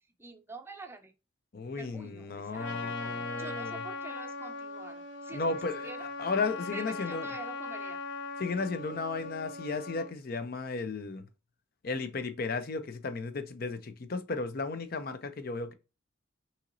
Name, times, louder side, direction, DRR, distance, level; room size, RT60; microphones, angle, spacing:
voice 1, 0.2-1.1 1.8-5.5 5.8-6.1 6.7-8.0, right 3 dB, 10° right, 0.5 m, -46 dB
voice 2, 1.5-3.8 5.3-5.9 6.2-7.3 8.4-11.3 11.8-15.7, left 4 dB, 50° left, 0.5 m, -34 dB
Trumpet, 2.5-10.1, left 3 dB, 75° left, 1.0 m, -39 dB
5.7 x 3.0 x 2.6 m
head